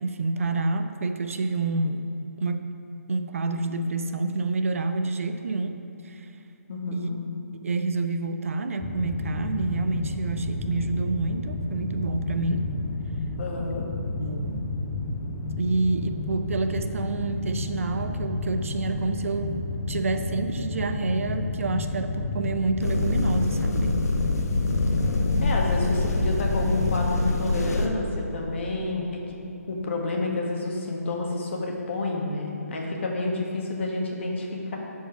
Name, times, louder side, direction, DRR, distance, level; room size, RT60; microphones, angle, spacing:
voice 1, 0.0-2.7 3.1-5.8 6.0-6.3 6.9-7.1 7.5-12.7 14.2-14.7 15.6-24.0, right 3 dB, 55° right, 7 dB, 0.6 m, -28 dB
voice 2, 6.7-7.2 13.4-13.9 25.4-29.2 29.7-34.8, left 2 dB, 45° left, -1 dB, 1.5 m, -29 dB
sound 1, 8.8-27.0, left 2 dB, 25° left, 0.8 m, -31 dB
sound 2, 22.8-27.9, left 2 dB, 75° left, 1.0 m, -25 dB
10.0 x 4.6 x 5.8 m, 2.7 s
figure-of-eight pair, 145°, 9 cm